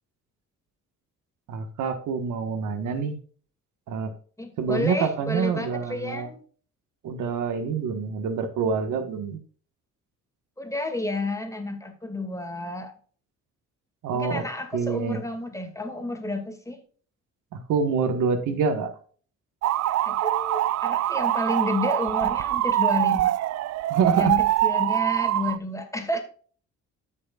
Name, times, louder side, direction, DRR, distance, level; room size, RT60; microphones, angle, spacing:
voice 1, 1.5-3.2 3.9-4.1 4.6-6.3 7.0-9.4 14.0-14.4 14.7-15.2 17.7-18.9 23.9-24.3, right 6 dB, 85° right, 8 dB, 1.5 m, -26 dB
voice 2, 4.4-6.4 10.6-12.9 14.1-16.8 20.0-23.3 24.2-26.2, left 2 dB, 10° left, 5 dB, 2.2 m, -30 dB
sound 1, 19.6-25.6, right 14 dB, 60° right, 0.4 m, -24 dB
13.0 x 6.3 x 2.4 m, 0.43 s
cardioid pair, 90°, 30 cm